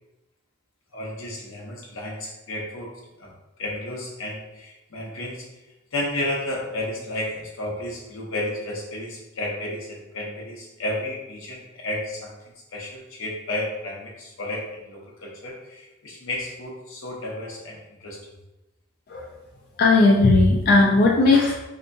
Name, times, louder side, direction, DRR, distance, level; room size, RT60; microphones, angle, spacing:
voice 1, 0.9-5.5 5.9-12.4 12.7-18.2, left 1 dB, 85° left, -2 dB, 0.8 m, -32 dB
voice 2, 19.8-21.6, left 3 dB, 50° left, -1 dB, 0.3 m, -17 dB
3.3 x 2.8 x 2.6 m, 1.0 s
head